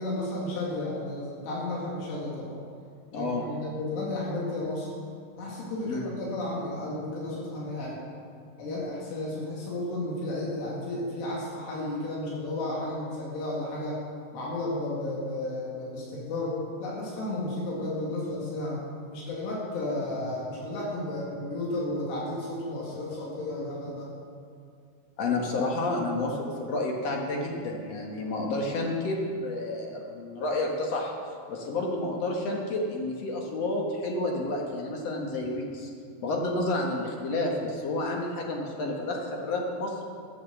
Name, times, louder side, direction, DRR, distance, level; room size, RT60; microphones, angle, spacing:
voice 1, 0.0-2.6 3.1-4.9 5.4-8.0 8.6-14.0 14.3-18.8 19.1-24.1, left 1 dB, 85° left, -5 dB, 4.2 m, -33 dB
voice 2, 3.1-3.5 5.8-6.1 25.2-31.1 31.5-35.9 36.2-40.0, left 2 dB, 55° left, 0 dB, 1.8 m, -30 dB
14.5 x 7.2 x 7.2 m, 2.4 s
omnidirectional pair, 4.7 m